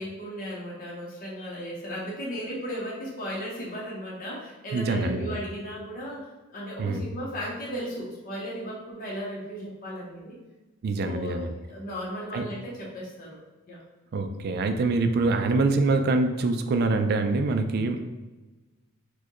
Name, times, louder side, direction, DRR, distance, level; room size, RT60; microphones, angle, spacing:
voice 1, 0.0-10.4 11.0-13.4 13.7-13.8, equal, 40° left, -5 dB, 0.7 m, -36 dB
voice 2, 4.7-5.4 6.8-7.0 10.8-11.5 12.3-12.5 14.1-18.1, right 3 dB, 50° right, 7 dB, 0.3 m, -25 dB
4.4 x 2.1 x 3.0 m, 1.1 s
head